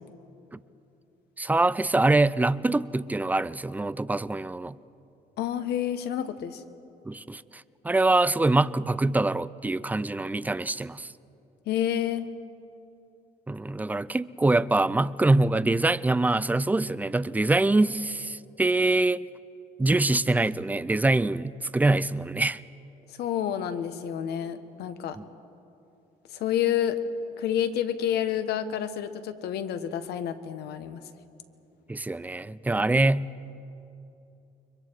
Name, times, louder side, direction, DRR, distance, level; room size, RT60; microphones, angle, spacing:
voice 1, 1.4-4.8 7.1-11.1 13.5-19.2 19.8-22.6 31.9-33.3, right 2 dB, 10° right, 17 dB, 0.4 m, -24 dB
voice 2, 5.4-6.6 11.7-12.3 23.1-25.2 26.3-27.0 27.4-31.0, left 10 dB, 75° left, 9 dB, 1.3 m, -29 dB
29.5 x 23.5 x 4.8 m, 2.8 s
cardioid pair, 110°, 17 cm